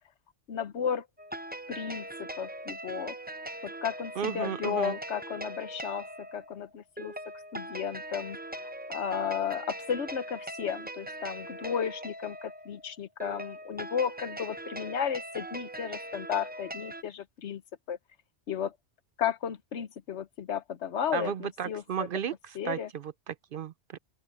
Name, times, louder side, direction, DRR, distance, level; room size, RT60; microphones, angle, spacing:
voice 1, 0.5-1.1 1.7-3.1 3.6-7.1 7.5-8.4 8.9-17.6 17.9-18.0 18.5-18.8 19.2-22.1 22.5-22.9, left 8 dB, 85° left, 1.2 m, -34 dB
sound 1, 1.2-17.0, right 1 dB, 10° right, 0.7 m, -41 dB
voice 2, 4.2-4.9 21.1-24.0, right 8 dB, 60° right, 0.7 m, -34 dB
open air
omnidirectional pair, 1.1 m